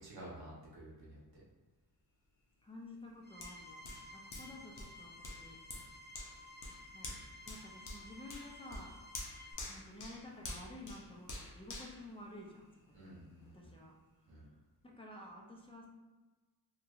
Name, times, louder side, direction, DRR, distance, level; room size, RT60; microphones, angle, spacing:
voice 1, 0.0-1.4 12.9-13.7 14.3-14.5, right 1 dB, 70° right, -6 dB, 1.4 m, -51 dB
voice 2, 2.6-5.6 6.9-7.2 7.5-8.9 9.7-13.1 13.5-13.9 14.3-14.4 14.8-15.9, left 1 dB, 15° left, -2 dB, 0.6 m, -52 dB
sound 1, 3.2-9.5, left 1 dB, 25° right, 0.8 m, -54 dB
Hands, 3.4-12.9 13.4-13.5, left 2 dB, 55° left, 0.7 m, -49 dB
2.9 x 2.8 x 2.5 m, 1.2 s
cardioid pair, 85°, 38 cm